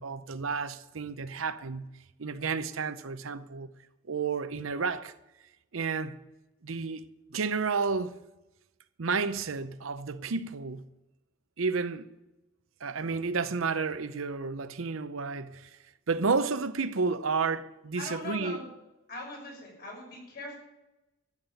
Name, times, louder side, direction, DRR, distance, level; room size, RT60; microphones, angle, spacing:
voice 1, 0.0-1.9 2.2-3.7 4.1-5.1 5.7-6.2 6.6-7.0 7.3-8.2 9.0-10.9 11.6-12.1 12.8-15.7 16.1-18.6, right 4 dB, 90° right, 0.7 m, -31 dB
voice 2, 18.0-18.7 19.1-20.6, left 2 dB, 50° left, 5.9 m, -41 dB
13.0 x 7.4 x 9.0 m
head